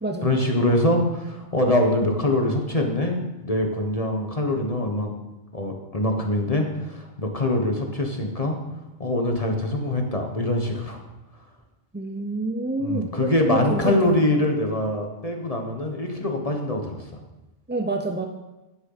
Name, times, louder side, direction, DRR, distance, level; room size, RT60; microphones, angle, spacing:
voice 1, 0.2-5.1 5.5-8.6 9.0-11.0 12.8-17.2, left 1 dB, 30° left, 3 dB, 1.3 m, -24 dB
voice 2, 11.9-14.3 17.7-18.3, right 2 dB, 15° right, 3 dB, 0.4 m, -27 dB
10.0 x 7.8 x 5.6 m, 1.1 s
omnidirectional pair, 1.3 m